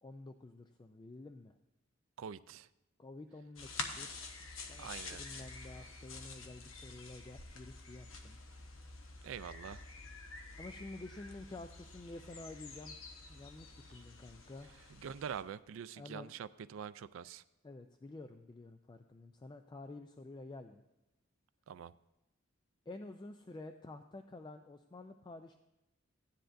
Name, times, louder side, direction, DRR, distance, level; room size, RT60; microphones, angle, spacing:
voice 1, 0.0-1.5 3.0-4.2 4.7-8.4 10.6-13.0 13.3-14.8 16.0-16.3 17.6-20.8 22.9-25.5, left 2 dB, 20° left, 7 dB, 0.3 m, -50 dB
voice 2, 2.2-2.7 4.8-5.4 9.2-9.8 14.9-17.4 21.7-21.9, right 7 dB, 75° right, 15 dB, 0.3 m, -45 dB
sound 1, 3.6-15.4, left 3 dB, 75° left, 1.0 m, -48 dB
14.5 x 10.0 x 2.6 m, 0.97 s
head